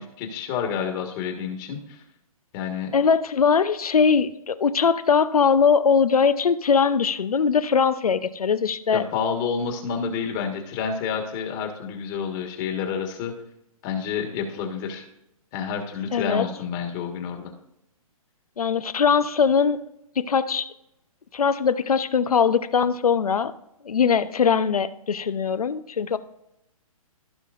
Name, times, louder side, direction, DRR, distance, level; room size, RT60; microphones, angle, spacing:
voice 1, 0.0-2.0 2.5-2.9 8.9-13.3 13.8-15.0 15.5-17.5, left 6 dB, 35° left, 4 dB, 1.6 m, -29 dB
voice 2, 2.9-9.0 16.1-16.5 18.6-19.8 20.2-20.7 21.3-23.5 23.8-26.2, left 6 dB, 85° left, 13 dB, 0.7 m, -21 dB
15.5 x 5.7 x 2.6 m, 0.83 s
hypercardioid pair, 140°, 19 cm